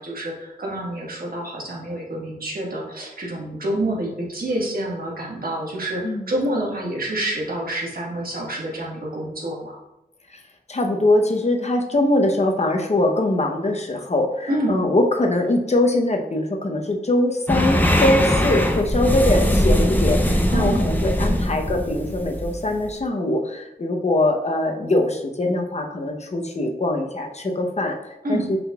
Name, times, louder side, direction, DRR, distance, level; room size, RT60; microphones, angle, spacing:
voice 1, 0.0-9.8 14.5-14.8 20.5-20.9 28.2-28.5, right 1 dB, 65° right, -3 dB, 1.4 m, -27 dB
voice 2, 10.7-28.6, left 1 dB, 45° left, 2 dB, 0.7 m, -22 dB
sound 1, 17.5-23.0, equal, 10° left, 0.5 m, -21 dB
5.7 x 3.8 x 2.3 m, 0.91 s
wide cardioid pair, 60°, 17 cm